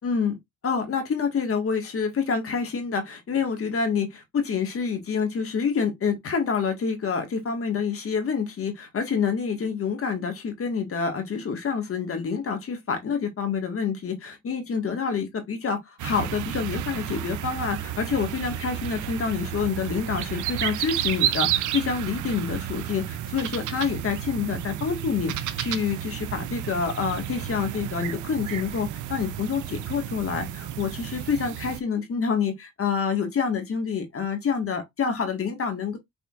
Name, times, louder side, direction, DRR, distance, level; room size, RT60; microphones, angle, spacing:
voice 1, 0.0-0.4 0.6-36.0, left 6 dB, 50° left, 1.6 m, -27 dB
sound 1, 16.0-31.8, right 11 dB, 80° right, 0.6 m, -31 dB
6.1 x 3.6 x 2.4 m
cardioid pair, 90°, 30 cm